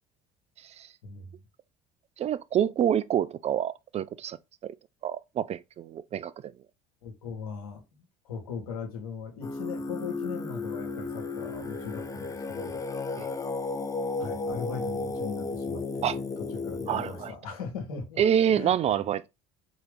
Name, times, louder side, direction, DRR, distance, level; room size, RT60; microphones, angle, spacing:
voice 1, 1.0-1.3 7.0-12.8 13.1-13.2 14.2-16.1 16.5-18.2 18.5-19.0, left 5 dB, 80° left, 1.2 m, -39 dB
voice 2, 2.2-4.4 4.6-4.7 5.0-6.3 13.2-13.3 16.0-16.2 16.9-17.3 18.2-19.3, right 9 dB, 35° right, 0.4 m, -27 dB
Singing, 9.4-17.3, left 3 dB, 20° left, 0.6 m, -34 dB
3.8 x 2.9 x 3.5 m
hypercardioid pair, 60°, 18 cm